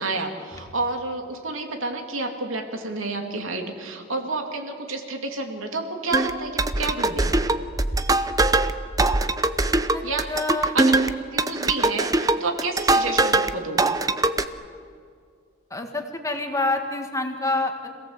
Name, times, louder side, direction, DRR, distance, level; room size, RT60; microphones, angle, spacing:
voice 1, 0.0-7.4 10.0-10.3 10.6-11.0 11.3-14.0, right 3 dB, 85° right, 3 dB, 2.6 m, -30 dB
sound 1, 6.1-13.5 13.8-14.4, right 2 dB, 20° right, 0.7 m, -22 dB
voice 2, 10.3-10.7 15.7-17.9, left 2 dB, 15° left, 4 dB, 1.9 m, -27 dB
26.0 x 17.0 x 8.0 m, 2.2 s
head